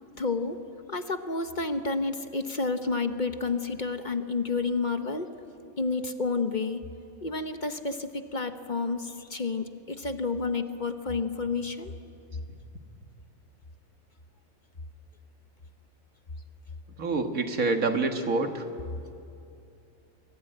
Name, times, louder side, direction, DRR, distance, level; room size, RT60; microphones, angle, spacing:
voice 1, 0.2-0.6 0.9-5.3 5.8-6.8 7.2-11.9, left 4 dB, 40° left, 8 dB, 1.0 m, -30 dB
voice 2, 17.0-18.6, right 3 dB, 90° right, 6 dB, 2.0 m, -27 dB
24.5 x 22.0 x 9.1 m, 2.6 s
omnidirectional pair, 1.4 m